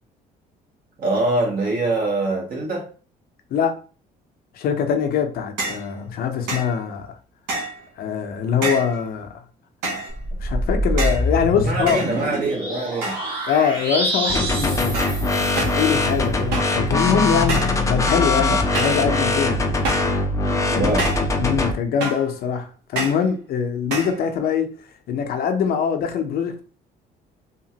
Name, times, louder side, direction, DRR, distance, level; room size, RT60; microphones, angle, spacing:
voice 1, 1.0-2.9 11.6-13.1 18.5-18.6 20.6-21.0, right 2 dB, 60° right, 1.4 m, -24 dB
voice 2, 4.5-7.1 8.0-9.4 10.4-12.0 13.5-15.2 15.6-19.6 20.7-21.0 21.4-24.7 25.1-26.6, left 7 dB, 65° left, 0.6 m, -23 dB
large pipe bang, 5.6-5.9 6.5-6.8 7.5-7.8 8.6-9.0 9.8-10.2 11.0-11.3 11.9-12.5 13.0-13.4 13.7-14.2 14.9-15.2 15.6-15.8 16.5-16.8 17.5-17.8 18.7-19.1 19.8-20.2 21.0-21.3 22.0-22.3 23.0-23.3 23.9-24.2, right 2 dB, 85° right, 1.1 m, -28 dB
sound 1, 10.1-15.9, equal, 30° right, 1.1 m, -26 dB
sound 2, 14.3-21.7, left 2 dB, 20° left, 0.5 m, -21 dB
2.9 x 2.5 x 2.8 m
cardioid pair, 110°, 17 cm